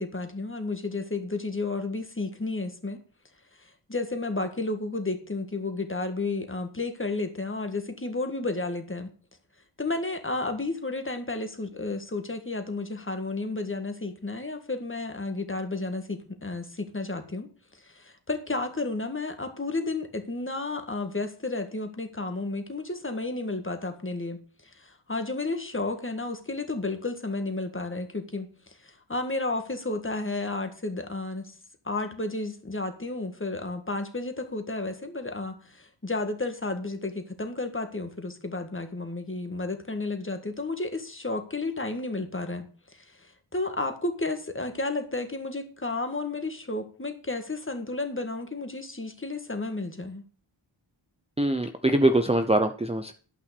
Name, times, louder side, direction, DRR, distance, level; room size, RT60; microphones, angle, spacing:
voice 1, 0.0-3.0 3.6-9.1 9.8-24.4 24.7-31.5 31.8-50.2, left 2 dB, 25° left, 7 dB, 1.7 m, -32 dB
voice 2, 51.4-53.1, right 1 dB, 15° right, 6 dB, 0.6 m, -23 dB
11.5 x 5.8 x 6.8 m, 0.41 s
wide cardioid pair, 90°, 49 cm